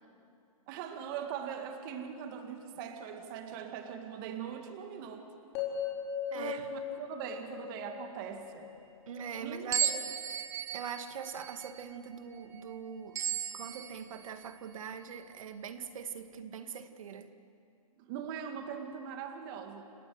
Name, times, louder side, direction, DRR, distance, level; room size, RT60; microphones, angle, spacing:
voice 1, 0.7-5.3 6.3-8.8 9.4-10.0 18.0-19.8, right 8 dB, 35° right, 6 dB, 2.0 m, -41 dB
sound 1, 5.5-9.7, left 8 dB, 30° left, 4.2 m, -39 dB
voice 2, 6.3-6.6 9.1-9.9 10.7-13.2 13.5-17.3, right 7 dB, 65° right, 9 dB, 1.8 m, -42 dB
sound 2, 9.7-14.6, right 8 dB, 15° right, 1.1 m, -36 dB
29.5 x 17.5 x 7.8 m, 2.5 s
hypercardioid pair, 145°, 19 cm